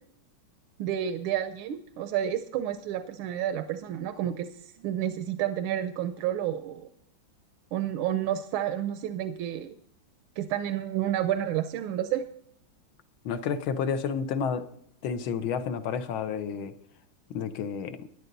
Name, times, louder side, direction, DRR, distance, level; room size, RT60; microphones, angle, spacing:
voice 1, 0.8-6.9 7.7-9.7 10.4-12.2, right 11 dB, 90° right, 9 dB, 1.5 m, -30 dB
voice 2, 13.2-14.6 15.0-16.7 17.3-18.1, left 6 dB, 85° left, 10 dB, 1.7 m, -30 dB
12.5 x 10.5 x 4.0 m, 0.71 s
omnidirectional pair, 2.2 m